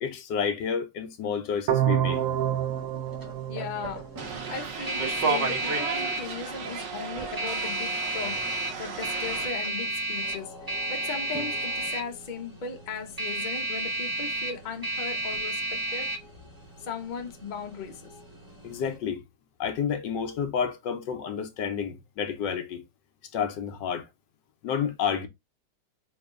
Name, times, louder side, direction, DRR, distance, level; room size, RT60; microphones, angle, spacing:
voice 1, 0.0-2.2 18.6-19.2 19.6-22.8 23.3-24.1 24.6-25.3, left 7 dB, 90° left, 1.5 m, -30 dB
sound 1, 1.7-4.6, right 11 dB, 70° right, 0.8 m, -28 dB
sound 2, 2.1-19.0, right 1 dB, 15° right, 0.9 m, -33 dB
voice 2, 3.5-4.1 4.5-8.5 8.8-10.5 10.9-16.1 16.8-18.0, left 5 dB, 35° left, 0.8 m, -37 dB
sound 3, 4.2-9.5, right 5 dB, 85° right, 1.8 m, -33 dB
4.3 x 3.1 x 3.7 m
omnidirectional pair, 1.9 m